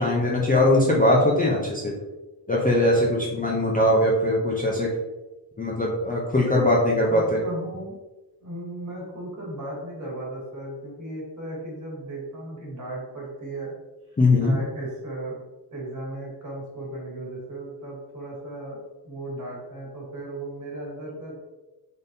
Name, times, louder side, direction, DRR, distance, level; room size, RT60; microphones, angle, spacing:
voice 1, 0.0-2.0 2.5-4.9 5.6-7.4 14.2-14.6, left 1 dB, 20° left, -3 dB, 0.4 m, -21 dB
voice 2, 7.1-8.0 8.4-13.7 14.1-15.4 15.7-21.3, right 1 dB, 40° right, -4 dB, 1.4 m, -36 dB
3.9 x 3.5 x 2.6 m, 1.1 s
wide cardioid pair, 165°, 44 cm